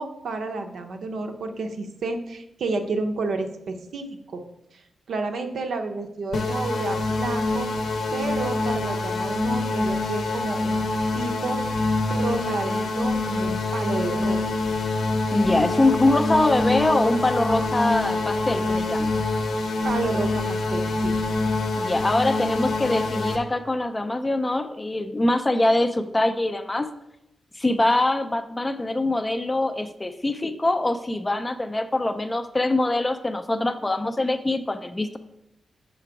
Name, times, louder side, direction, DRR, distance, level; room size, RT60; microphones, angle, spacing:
voice 1, 0.0-4.4 4.7-4.8 5.1-7.7 8.1-10.9 11.1-14.4 19.8-21.2, right 3 dB, 70° right, 5 dB, 0.6 m, -30 dB
sound 1, 6.3-23.4, left 2 dB, 75° left, 0.7 m, -25 dB
voice 2, 15.3-19.1 21.8-26.9 27.6-35.2, left 2 dB, 15° left, 9 dB, 0.3 m, -23 dB
5.8 x 3.9 x 4.6 m, 0.82 s
wide cardioid pair, 145°, 0 cm